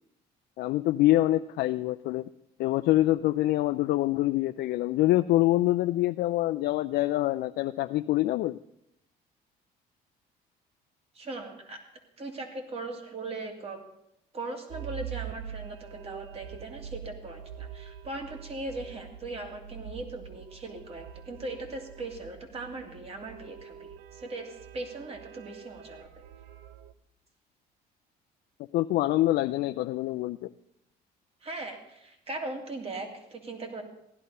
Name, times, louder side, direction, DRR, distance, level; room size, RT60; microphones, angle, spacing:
voice 1, 0.6-2.3 2.6-8.6 28.7-30.5, left 16 dB, 75° left, 8 dB, 0.4 m, -25 dB
voice 2, 11.1-11.8 12.2-13.8 14.3-26.2 31.4-33.8, right 2 dB, 35° right, 4 dB, 2.6 m, -39 dB
sound 1, 14.7-26.9, right 9 dB, 80° right, 0.8 m, -44 dB
16.0 x 11.5 x 5.5 m, 0.81 s
cardioid pair, 110°, 17 cm